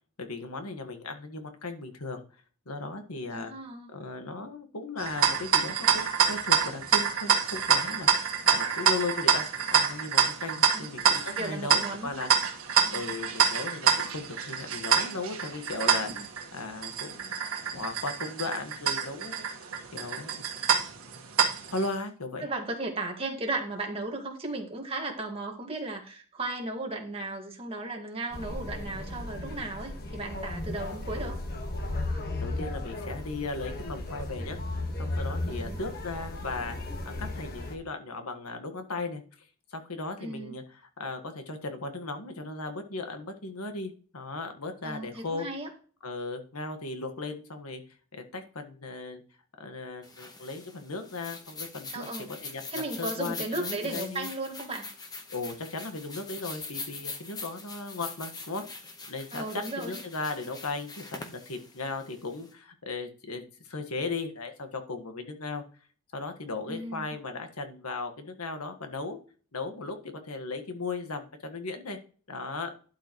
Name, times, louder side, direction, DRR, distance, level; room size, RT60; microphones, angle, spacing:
voice 1, 0.2-2.2 2.6-3.5 3.9-12.3 12.9-16.1 16.5-17.4 17.7-19.5 19.9-20.5 21.7-22.5 32.4-34.6 35.0-36.8 37.0-45.5 46.0-47.8 48.1-49.2 49.6-52.1 52.4-54.3 55.3-58.6 59.1-65.6 66.1-69.2 69.5-70.0 70.2-72.0 72.3-72.7, left 3 dB, 80° left, 5 dB, 1.6 m, -37 dB
voice 2, 3.3-3.9 10.7-10.9 11.4-12.2 12.8-13.0 16.1-16.2 22.4-31.4 35.5-35.8 40.2-40.5 44.8-45.7 51.9-52.3 52.7-54.9 59.3-60.0 66.7-67.1, right 2 dB, 25° right, 2 dB, 2.0 m, -35 dB
sound 1, 5.0-21.9, right 6 dB, 70° right, 1.7 m, -26 dB
sound 2, 28.3-37.7, left 2 dB, 45° left, 1.6 m, -35 dB
sound 3, 50.0-62.5, left 3 dB, 15° left, 1.2 m, -42 dB
12.0 x 8.1 x 3.1 m, 0.41 s
head